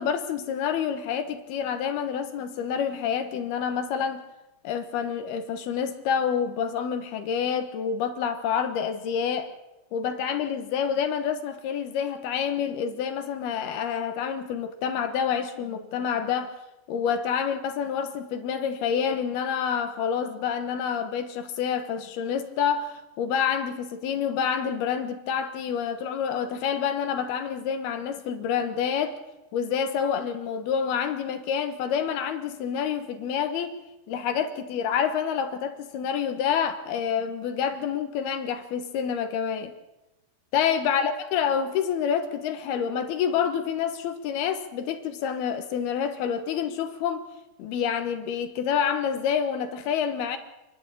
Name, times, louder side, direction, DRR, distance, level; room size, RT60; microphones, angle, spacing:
voice 1, 0.0-4.2 4.6-9.5 9.9-16.5 16.9-29.2 29.5-33.8 34.1-39.7 40.5-47.3 47.6-50.4, left 7 dB, 70° left, 3.2 m, -28 dB
27.5 x 11.5 x 8.5 m
omnidirectional pair, 4.8 m